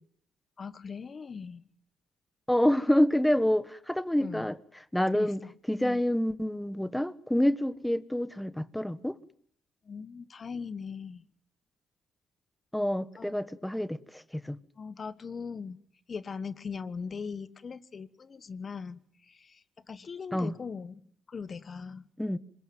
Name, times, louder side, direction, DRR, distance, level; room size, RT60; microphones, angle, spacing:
voice 1, 0.6-1.7 4.2-4.5 5.1-5.5 5.8-6.0 9.8-11.2 13.2-13.3 14.8-15.8 16.1-22.0, left 5 dB, 40° left, 1.3 m, -40 dB
voice 2, 2.5-4.5 4.9-5.4 5.7-9.2 12.7-14.6 20.3-20.5 22.2-22.4, left 1 dB, 5° left, 1.3 m, -27 dB
26.5 x 22.0 x 9.3 m
cardioid pair, 90°, 0 cm